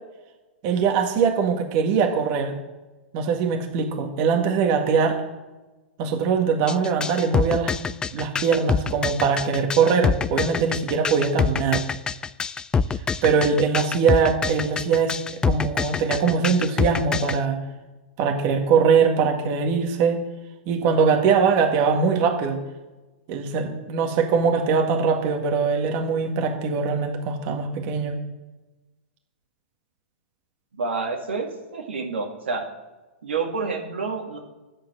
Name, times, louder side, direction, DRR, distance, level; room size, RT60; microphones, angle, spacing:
voice 1, 0.6-2.6 3.1-5.2 6.0-7.7 8.1-11.8 13.2-15.2 15.4-17.6 18.2-20.2 20.7-22.6 23.3-28.2, right 5 dB, 45° right, 3 dB, 1.8 m, -22 dB
sound 1, 6.7-17.4, left 5 dB, 15° left, 0.3 m, -25 dB
voice 2, 30.8-32.7 33.2-34.4, right 4 dB, 80° right, 2 dB, 2.1 m, -28 dB
9.9 x 7.5 x 7.5 m, 1.2 s
hypercardioid pair, 110°, 6 cm